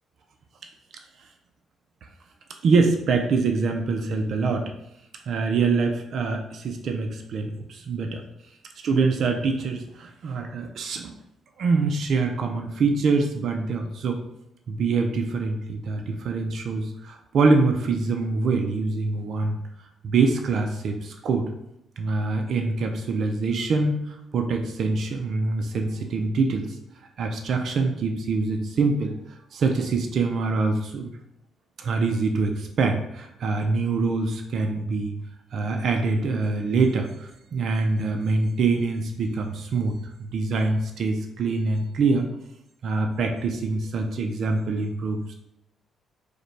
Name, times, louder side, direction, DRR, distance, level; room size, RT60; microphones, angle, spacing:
voice 1, 2.6-4.7 5.3-8.2 8.8-11.1 11.6-14.2 14.7-19.6 20.0-21.5 22.0-26.7 27.2-29.1 29.5-31.1 31.8-35.1 35.5-42.3 42.8-45.3, right 4 dB, 60° right, 4 dB, 0.4 m, -24 dB
4.8 x 2.2 x 3.2 m, 0.81 s
cardioid pair, 90°, 0 cm